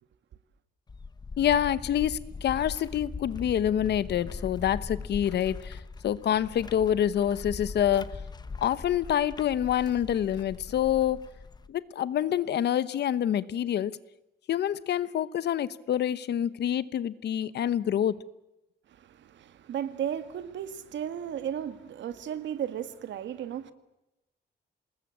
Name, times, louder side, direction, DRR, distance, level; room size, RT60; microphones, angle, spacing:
sound 1, 0.9-11.7, left 4 dB, 20° left, 0.9 m, -41 dB
voice 1, 1.4-5.8 6.0-8.2 8.6-11.3 11.7-14.0 14.5-18.2, left 10 dB, 65° left, 1.0 m, -27 dB
voice 2, 18.9-23.7, right 9 dB, 80° right, 1.8 m, -35 dB
26.5 x 20.5 x 8.8 m
wide cardioid pair, 175°, 19 cm